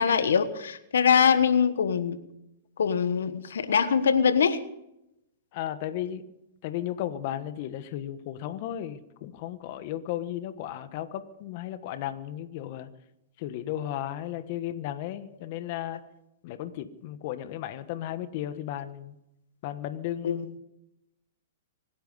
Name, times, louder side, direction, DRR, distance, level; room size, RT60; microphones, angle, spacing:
voice 1, 0.0-2.2 2.8-4.6 20.2-20.5, left 7 dB, 90° left, 12 dB, 1.2 m, -23 dB
voice 2, 5.5-6.3 6.6-12.9 13.4-16.0 16.4-19.1 19.6-20.6, left 12 dB, 50° left, 11 dB, 1.2 m, -35 dB
25.0 x 10.5 x 5.4 m, 0.86 s
hypercardioid pair, 140°, 0 cm